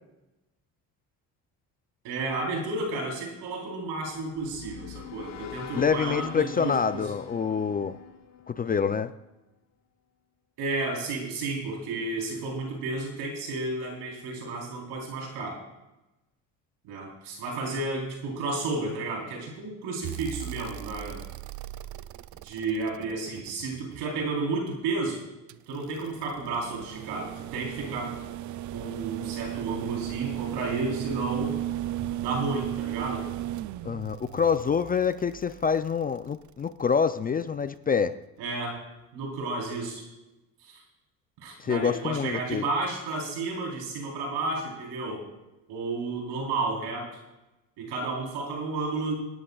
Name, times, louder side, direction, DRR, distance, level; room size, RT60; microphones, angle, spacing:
voice 1, 2.0-7.1 10.6-15.6 16.9-21.2 22.4-25.2 25.7-28.2 28.7-31.6 32.2-33.3 38.4-38.8 39.1-40.1 40.6-40.8 41.4-45.3 45.7-47.1 47.8-49.1, right 3 dB, 80° right, 0 dB, 3.9 m, -32 dB
sound 1, 4.1-9.3, left 9 dB, 45° left, 1.2 m, -44 dB
voice 2, 5.7-8.0 8.5-9.1 33.8-38.1 41.6-42.6, left 6 dB, 25° left, 12 dB, 0.4 m, -26 dB
sound 2, 20.0-24.2 25.5-36.7 38.2-38.3, right 13 dB, 50° right, 0.5 m, -36 dB
23.5 x 11.0 x 2.4 m, 1.0 s
cardioid pair, 95°, 39 cm